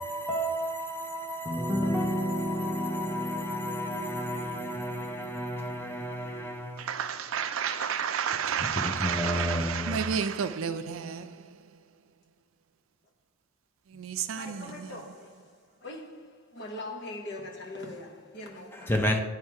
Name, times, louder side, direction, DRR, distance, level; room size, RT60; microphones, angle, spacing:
voice 1, 0.0-7.0 7.7-8.0 8.6-10.0 18.7-19.2, equal, 10° left, 0.6 m, -31 dB
voice 2, 6.8-11.5 13.9-15.0, right 7 dB, 85° right, 0.4 m, -31 dB
voice 3, 14.3-15.5 15.8-18.9, left 2 dB, 55° left, 1.0 m, -41 dB
8.8 x 3.2 x 4.7 m
head